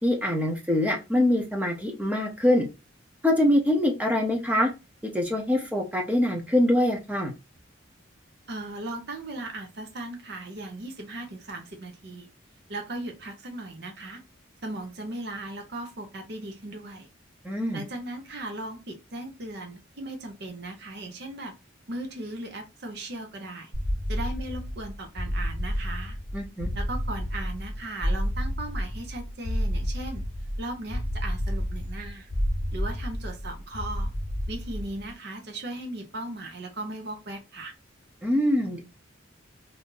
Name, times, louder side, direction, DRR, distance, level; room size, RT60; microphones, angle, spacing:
voice 1, 0.0-2.7 3.2-4.7 5.0-7.3 17.4-17.8 26.3-26.7 38.2-38.8, left 1 dB, 10° right, 0.7 m, -24 dB
voice 2, 8.5-12.3 12.7-14.2 14.6-17.1 17.7-21.6 21.9-23.7 24.1-26.2 26.8-30.2 30.6-32.3 32.7-34.1 34.5-37.7, right 2 dB, 55° right, 0.7 m, -37 dB
sound 1, 23.7-35.1, equal, 80° right, 1.4 m, -30 dB
2.7 x 2.6 x 3.6 m
head